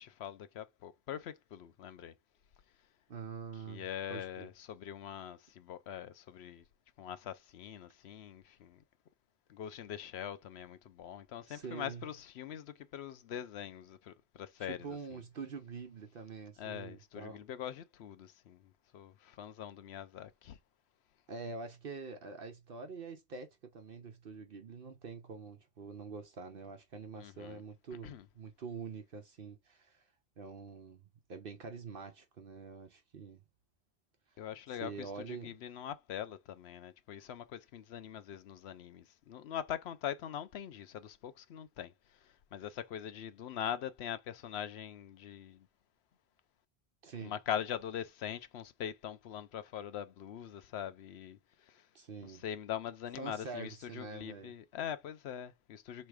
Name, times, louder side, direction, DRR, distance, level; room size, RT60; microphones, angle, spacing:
voice 1, 0.0-2.1 3.7-6.6 7.0-8.8 9.5-15.2 16.6-20.6 27.2-27.6 28.0-28.3 34.4-45.7 47.2-51.9 52.2-56.1, left 9 dB, 75° left, 0.9 m, -43 dB
voice 2, 3.1-4.5 11.5-12.1 14.6-17.4 21.3-30.0 30.4-31.0 31.3-33.4 34.8-35.5 47.0-47.3 51.9-52.4 53.2-54.5, right 4 dB, 60° right, 0.9 m, -45 dB
3.3 x 3.2 x 4.8 m
omnidirectional pair, 1.1 m